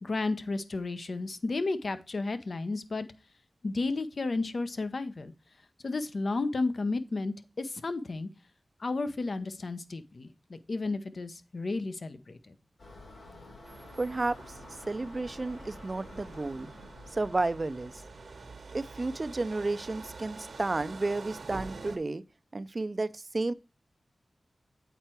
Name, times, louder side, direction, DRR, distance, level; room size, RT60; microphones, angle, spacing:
voice 1, 0.0-3.1 3.6-5.3 5.8-8.3 8.8-12.5, left 3 dB, 60° left, 0.7 m, -32 dB
sound 1, 12.8-18.5, left 2 dB, 85° left, 2.9 m, -51 dB
sound 2, 13.6-22.0, right 3 dB, 75° right, 1.1 m, -46 dB
voice 2, 14.0-14.4 14.9-16.7 17.1-17.9 18.7-22.2 22.5-23.5, right 2 dB, 40° right, 0.4 m, -32 dB
8.1 x 4.5 x 4.4 m
cardioid pair, 60°, 0 cm